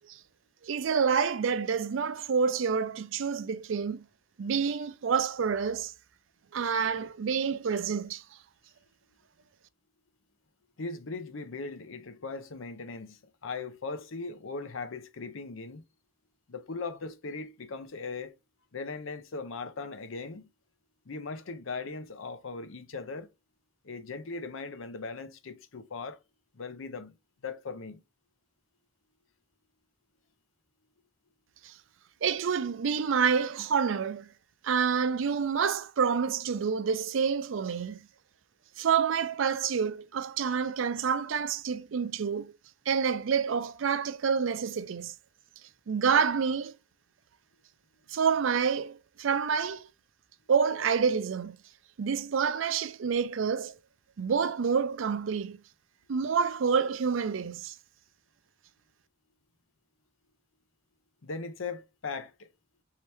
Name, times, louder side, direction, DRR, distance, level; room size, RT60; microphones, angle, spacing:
voice 1, 0.6-4.0 4.4-5.9 6.5-8.2 31.6-31.7 32.2-34.3 34.6-38.0 38.8-42.5 42.9-45.1 45.9-46.7 48.1-49.8 50.5-51.6 52.0-53.8 54.2-55.6 56.1-57.8, right 6 dB, 65° right, 0.4 m, -28 dB
voice 2, 10.8-15.8 16.5-18.3 18.7-20.5 21.1-23.3 23.8-26.2 26.5-27.1 27.4-28.0 40.5-40.6 61.2-62.5, left 4 dB, 75° left, 0.7 m, -39 dB
4.4 x 2.8 x 3.4 m
head